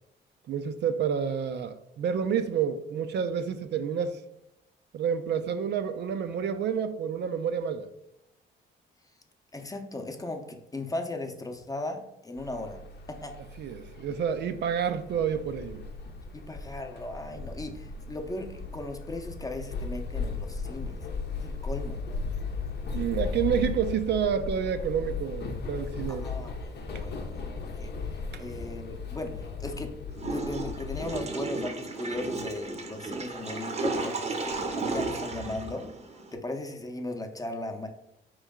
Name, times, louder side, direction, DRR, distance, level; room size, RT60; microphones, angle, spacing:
voice 1, 0.5-4.2 4.9-7.9 13.6-15.8 22.9-26.3 28.3-28.4, right 7 dB, 60° right, 0.4 m, -29 dB
voice 2, 9.5-12.8 13.1-13.3 16.3-21.0 21.4-22.0 26.1-29.9 30.3-35.8 36.3-37.9, left 2 dB, 15° left, 0.7 m, -37 dB
sound 1, 12.4-31.2, left 4 dB, 55° left, 0.7 m, -36 dB
Water / Toilet flush, 30.2-36.4, right 3 dB, 35° right, 0.7 m, -33 dB
4.3 x 3.1 x 3.6 m
cardioid pair, 90°, 20 cm